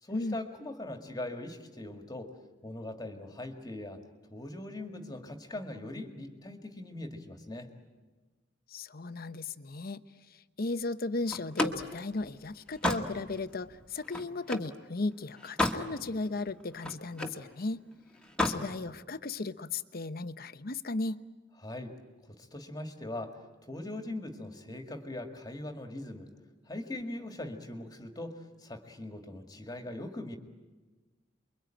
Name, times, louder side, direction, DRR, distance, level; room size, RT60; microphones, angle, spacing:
voice 1, 0.0-2.3 2.6-7.7 21.6-26.3 26.7-30.4, left 1 dB, 20° left, 5 dB, 2.0 m, -41 dB
voice 2, 8.7-10.0 10.3-17.9 18.4-21.2, left 3 dB, 50° left, 12 dB, 0.9 m, -36 dB
Slam, 11.3-14.8 15.2-15.9 16.3-17.4 18.2-18.7, left 1 dB, 5° left, 1.7 m, -32 dB
29.0 x 23.0 x 9.0 m, 1.3 s
head